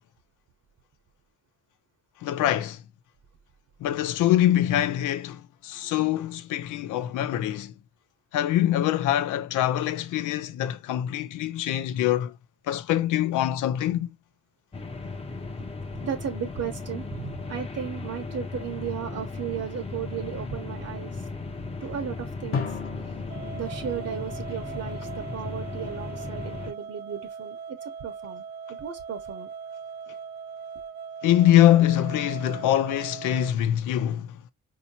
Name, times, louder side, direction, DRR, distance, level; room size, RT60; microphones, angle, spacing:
voice 1, 2.2-2.8 3.8-7.7 8.3-12.3 12.7-14.1 31.2-34.4, left 12 dB, 80° left, 0.5 m, -24 dB
sound 1, 14.7-26.7, left 3 dB, 20° left, 0.8 m, -36 dB
voice 2, 16.0-21.3 21.8-22.8 23.5-28.4 28.7-29.5, right 8 dB, 55° right, 1.0 m, -35 dB
Drum, 22.5-25.2, left 6 dB, 45° left, 1.1 m, -35 dB
sound 2, 23.3-33.5, right 6 dB, 35° right, 0.4 m, -40 dB
4.4 x 2.8 x 2.7 m
cardioid pair, 90°, 30 cm